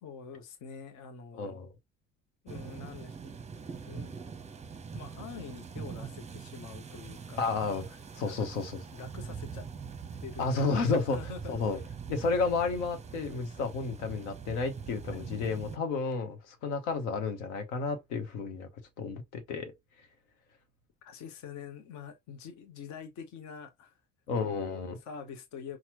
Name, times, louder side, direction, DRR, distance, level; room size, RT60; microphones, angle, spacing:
voice 1, 0.0-1.7 2.4-3.3 3.9-4.2 4.9-7.6 8.2-8.5 8.9-9.7 10.2-10.8 11.0-11.8 15.1-15.3 21.0-24.0 24.4-25.8, left 6 dB, 50° left, 1.1 m, -45 dB
voice 2, 1.3-1.7 7.4-7.8 8.1-8.8 10.4-11.2 11.5-11.8 12.1-18.7 19.0-19.7 24.3-24.9, left 4 dB, 70° left, 1.3 m, -31 dB
sound 1, 2.5-15.8, right 6 dB, 20° right, 0.8 m, -43 dB
5.8 x 2.4 x 3.1 m
figure-of-eight pair, 60°, 37 cm